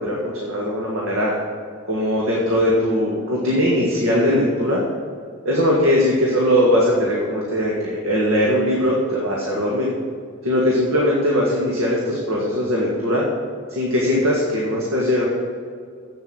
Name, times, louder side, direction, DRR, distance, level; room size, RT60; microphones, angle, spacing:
voice 1, 0.0-1.4 1.9-4.8 5.5-9.9 10.4-13.2 13.7-15.2, equal, 80° right, -4 dB, 1.7 m, -20 dB
8.0 x 7.7 x 7.9 m, 2.1 s
head